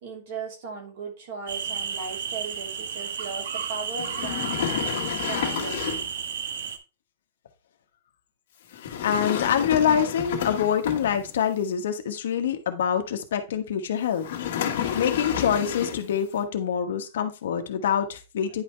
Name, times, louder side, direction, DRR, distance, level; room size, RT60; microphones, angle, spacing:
voice 1, 0.0-4.6 5.1-5.9, right 4 dB, 45° right, 0 dB, 2.8 m, -37 dB
sound 1, 1.5-6.8, right 7 dB, 85° right, 1.2 m, -32 dB
sound 2, 3.9-6.2 8.7-11.5 14.2-16.2, left 9 dB, 55° left, 1.7 m, -30 dB
voice 2, 9.0-14.2 14.9-18.6, left 8 dB, 75° left, 6 dB, 1.3 m, -25 dB
10.0 x 5.0 x 3.3 m, 0.28 s
supercardioid pair, 180°, 0 cm